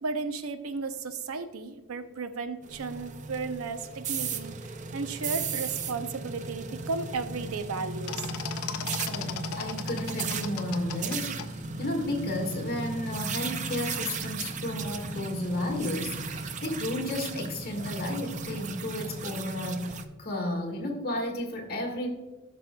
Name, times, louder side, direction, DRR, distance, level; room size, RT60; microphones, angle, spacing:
voice 1, 0.0-8.3, right 4 dB, 85° right, 10 dB, 0.6 m, -34 dB
sound 1, 2.6-20.0, right 4 dB, 35° right, 0.4 m, -35 dB
sound 2, 8.1-11.5, left 8 dB, 85° left, 0.5 m, -37 dB
voice 2, 9.0-22.1, left 1 dB, 45° left, 1 dB, 1.6 m, -33 dB
14.5 x 6.2 x 2.2 m, 1.3 s
head